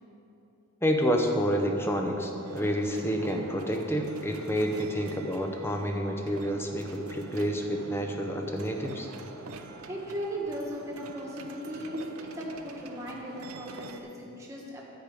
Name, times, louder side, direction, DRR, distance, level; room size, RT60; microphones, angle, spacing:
voice 1, 0.8-9.1, equal, 10° left, 3 dB, 0.7 m, -29 dB
sound 1, 2.4-14.0, right 3 dB, 80° right, 0.7 m, -45 dB
voice 2, 9.9-14.8, equal, 15° right, -3 dB, 1.5 m, -37 dB
10.5 x 5.0 x 8.2 m, 2.9 s
head